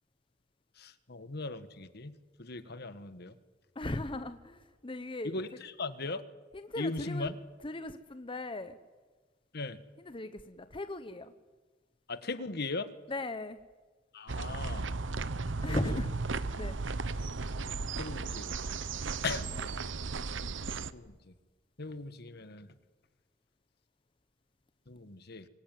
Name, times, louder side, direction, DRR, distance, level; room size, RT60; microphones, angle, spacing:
voice 1, 0.8-3.4 5.2-6.2 6.8-7.4 9.5-9.8 12.1-12.9 14.1-14.9 15.7-16.0 18.0-18.8 19.2-19.5 20.9-21.3 21.8-22.7 24.9-25.5, left 3 dB, 60° left, 12 dB, 1.5 m, -38 dB
voice 2, 3.8-5.3 6.5-7.3 7.6-8.8 10.1-11.3 13.1-13.6 15.6-16.1 16.6-16.8 19.1-19.2, left 2 dB, 30° left, 10 dB, 0.9 m, -38 dB
sound 1, 14.3-20.9, right 3 dB, 75° right, 0.9 m, -35 dB
26.0 x 22.5 x 9.3 m, 1.3 s
head